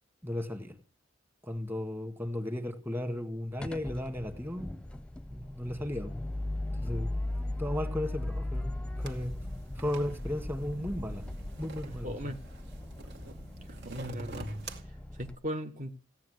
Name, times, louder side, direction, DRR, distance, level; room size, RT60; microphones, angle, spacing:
voice 1, 0.2-0.7 1.4-4.7 5.3-6.2 6.8-7.1 7.6-8.7 9.0-9.3 9.7-11.2 11.6-12.1, left 1 dB, 10° right, 1.8 m, -35 dB
sound 1, 3.6-15.4, left 1 dB, 5° left, 0.7 m, -38 dB
sound 2, 9.0-14.8, right 2 dB, 65° right, 2.4 m, -46 dB
voice 2, 11.8-12.4 13.7-14.5 14.8-15.9, equal, 45° right, 1.4 m, -39 dB
16.5 x 9.6 x 8.0 m
head